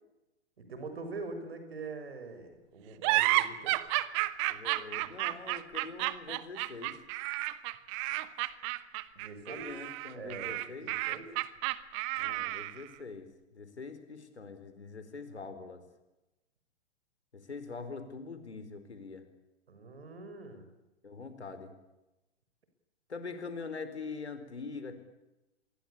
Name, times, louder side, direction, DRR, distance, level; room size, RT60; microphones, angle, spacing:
voice 1, 0.6-3.8 9.1-9.7 10.1-10.5 10.8-11.3 19.7-20.7, right 3 dB, 60° right, 8 dB, 6.7 m, -43 dB
sound 1, 3.0-12.9, right 18 dB, 25° right, 1.1 m, -32 dB
voice 2, 4.5-7.0 9.5-10.9 12.2-15.8 17.3-19.2 21.0-21.7 23.1-25.0, left 4 dB, 70° left, 10 dB, 4.7 m, -43 dB
27.5 x 22.0 x 8.5 m, 0.99 s
figure-of-eight pair, 115°, 34 cm